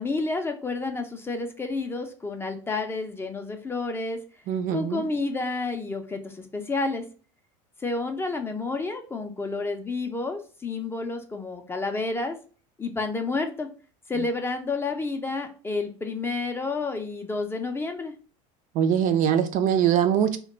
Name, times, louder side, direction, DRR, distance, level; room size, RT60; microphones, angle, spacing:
voice 1, 0.0-4.2 4.7-7.0 7.8-12.4 12.8-13.7 14.1-18.1, left 3 dB, 15° left, 5 dB, 0.4 m, -30 dB
voice 2, 4.5-5.1 18.7-20.4, right 9 dB, 50° right, 7 dB, 0.4 m, -22 dB
2.2 x 2.2 x 3.7 m, 0.38 s
supercardioid pair, 100°, 17 cm